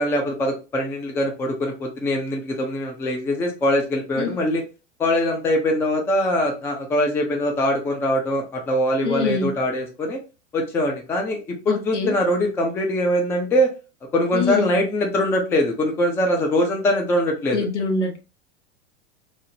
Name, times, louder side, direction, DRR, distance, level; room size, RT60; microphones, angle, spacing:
voice 1, 0.0-4.6 5.0-10.2 10.5-13.7 14.1-17.7, left 1 dB, 5° left, 0.4 m, -22 dB
voice 2, 9.0-9.5 11.7-12.2 14.3-14.7 17.5-18.2, left 4 dB, 75° left, 0.9 m, -24 dB
3.2 x 2.0 x 2.6 m
figure-of-eight pair, 90°, 35 cm